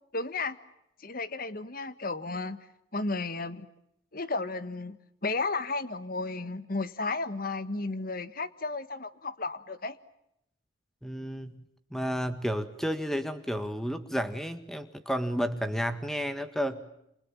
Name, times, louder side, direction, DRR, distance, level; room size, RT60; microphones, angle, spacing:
voice 1, 0.1-0.6 1.0-2.6 2.9-3.7 4.1-5.0 5.2-10.0, left 3 dB, 50° left, 13 dB, 1.5 m, -33 dB
voice 2, 11.0-11.6 11.9-16.8, equal, ahead, 10 dB, 1.8 m, -31 dB
28.5 x 28.0 x 7.4 m, 0.80 s
head